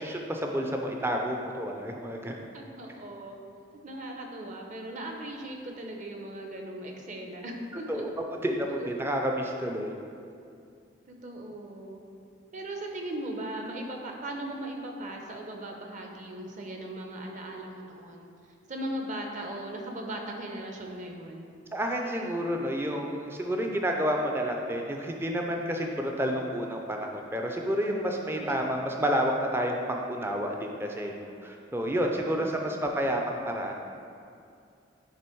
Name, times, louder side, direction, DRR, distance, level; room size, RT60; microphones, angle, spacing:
voice 1, 0.0-2.4 7.9-8.1 8.4-10.0 21.7-33.7, equal, 10° right, 1 dB, 0.5 m, -30 dB
voice 2, 2.5-3.4 3.8-8.0 8.8-8.9 11.1-12.0 12.5-18.3 18.7-21.5 28.3-28.4 32.0-32.7, right 1 dB, 40° right, 1 dB, 0.8 m, -38 dB
10.5 x 3.4 x 4.5 m, 2.4 s
head